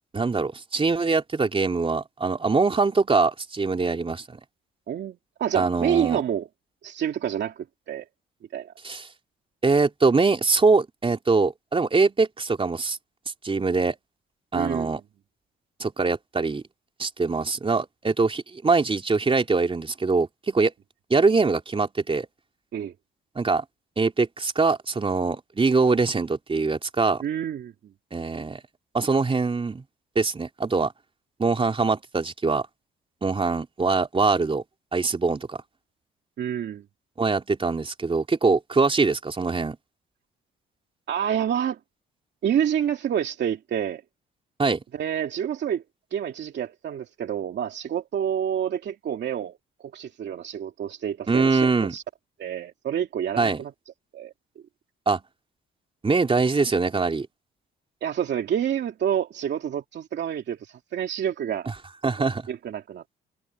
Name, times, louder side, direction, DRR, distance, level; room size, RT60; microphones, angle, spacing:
voice 1, 0.1-4.4 5.5-6.2 8.8-9.1 9.6-13.0 13.4-14.0 14.5-15.0 15.8-16.6 17.0-20.7 21.1-22.3 23.4-23.6 24.0-27.2 28.1-28.6 28.9-29.8 30.2-30.9 31.4-32.7 33.2-34.6 34.9-35.6 37.2-39.8 44.6-44.8 51.3-51.9 53.4-53.6 55.1-55.2 56.0-57.3 62.0-62.5, right 4 dB, 25° right, 3.5 m, -23 dB
voice 2, 4.9-6.5 6.8-8.0 8.5-8.7 14.5-14.9 22.7-22.9 27.2-27.7 36.4-36.8 41.1-41.8 42.4-44.0 44.9-45.8 46.1-49.6 49.9-52.0 52.4-53.7 54.1-54.3 58.0-61.7 62.2-63.2, right 9 dB, 65° right, 2.6 m, -28 dB
cardioid pair, 85°, 20 cm